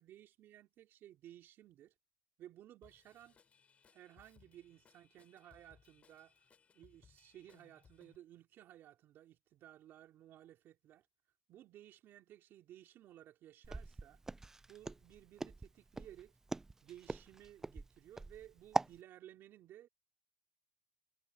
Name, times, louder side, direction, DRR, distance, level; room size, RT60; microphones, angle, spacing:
voice 1, 0.0-1.9 2.4-3.4 3.9-6.4 6.7-11.1 11.5-14.2 14.7-16.3 16.8-19.9, right 12 dB, 40° right, 2.9 m, -57 dB
Drum kit / Drum, 2.8-8.1, left 6 dB, 25° left, 7.6 m, -68 dB
Walk footsteps, 13.6-19.0, right 3 dB, 10° right, 0.3 m, -41 dB
supercardioid pair, 130°, 6 cm